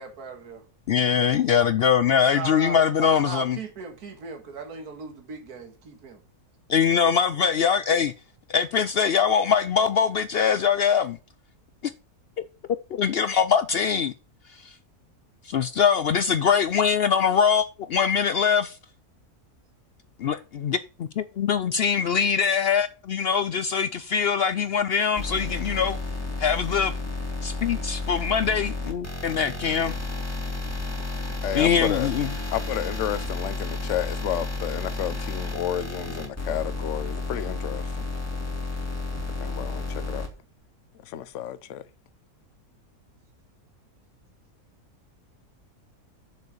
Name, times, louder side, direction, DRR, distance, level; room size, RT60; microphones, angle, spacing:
voice 1, 0.0-0.7 2.3-6.2, right 4 dB, 75° right, 2.1 m, -37 dB
voice 2, 0.9-3.6 6.7-8.1 8.5-11.2 12.4-12.5 12.9-14.1 14.6-14.7 15.4-18.8 20.2-26.0 26.4-26.9 27.4-29.9 31.5-32.3, left 7 dB, 75° left, 0.5 m, -23 dB
sound 1, 25.2-40.3, left 2 dB, 10° left, 2.6 m, -32 dB
voice 3, 31.4-32.1 32.5-37.8 39.4-40.2 41.1-41.8, left 11 dB, 60° left, 0.9 m, -31 dB
6.9 x 6.5 x 6.4 m
omnidirectional pair, 1.6 m